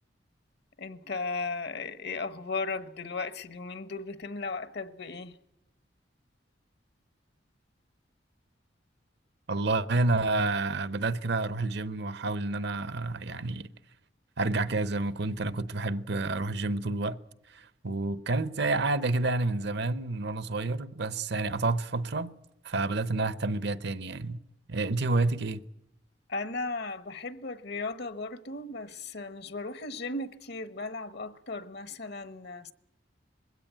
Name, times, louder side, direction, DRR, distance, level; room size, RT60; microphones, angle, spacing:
voice 1, 0.8-5.4 26.3-32.7, left 3 dB, 65° left, 1.1 m, -36 dB
voice 2, 9.5-13.7 14.4-17.2 17.5-22.3 22.6-24.4 24.7-25.6, right 2 dB, 65° right, 0.8 m, -29 dB
21.5 x 16.5 x 9.0 m
head